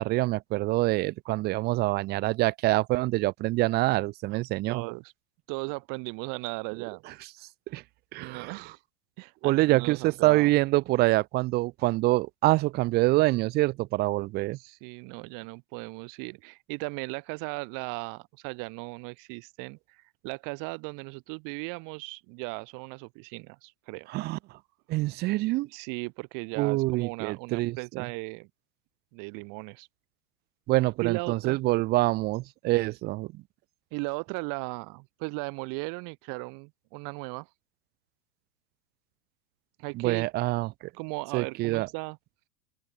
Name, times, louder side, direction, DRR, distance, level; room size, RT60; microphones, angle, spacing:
voice 1, 0.0-4.8 7.7-7.8 8.1-8.6 9.4-14.6 24.1-24.4 24.9-25.7 26.6-27.8 30.7-33.4 39.9-40.7 41.3-41.9, right 19 dB, 20° right, 0.5 m, -25 dB
voice 2, 4.7-5.1 5.5-7.0 8.2-8.8 9.2-10.5 14.5-24.1 25.7-28.5 29.1-29.9 31.0-31.6 33.9-37.5 39.8-40.3 40.9-42.2, right 32 dB, 40° right, 2.2 m, -37 dB
open air
figure-of-eight pair, 100°, 49 cm